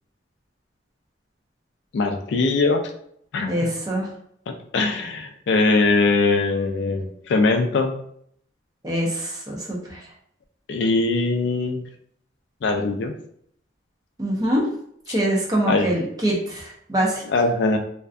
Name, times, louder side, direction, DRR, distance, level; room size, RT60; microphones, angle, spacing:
voice 1, 1.9-2.8 3.3-3.5 4.5-8.0 10.7-11.8 12.6-13.1 15.1-15.2 15.7-15.9 17.2-17.8, left 3 dB, 65° left, 5 dB, 0.3 m, -21 dB
voice 2, 3.5-4.1 8.8-10.0 14.2-14.6 15.1-17.2, right 1 dB, 20° right, -3 dB, 0.6 m, -24 dB
2.5 x 2.2 x 2.3 m, 0.68 s
head